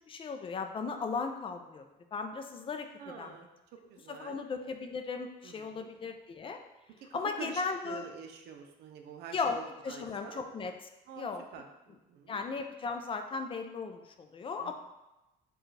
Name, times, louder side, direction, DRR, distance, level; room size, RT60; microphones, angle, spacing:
voice 1, 0.1-1.8 2.1-2.9 3.2-3.3 4.1-6.6 7.1-8.1 9.3-9.6 9.8-10.7 11.2-11.4 12.3-14.7, left 4 dB, 30° left, 6 dB, 0.4 m, -36 dB
voice 2, 3.0-3.5 3.9-4.4 5.4-5.9 7.1-10.4 11.1-12.4 14.6-14.7, right 7 dB, 75° right, 4 dB, 0.6 m, -47 dB
4.7 x 2.3 x 3.2 m, 0.98 s
cardioid pair, 110°, 17 cm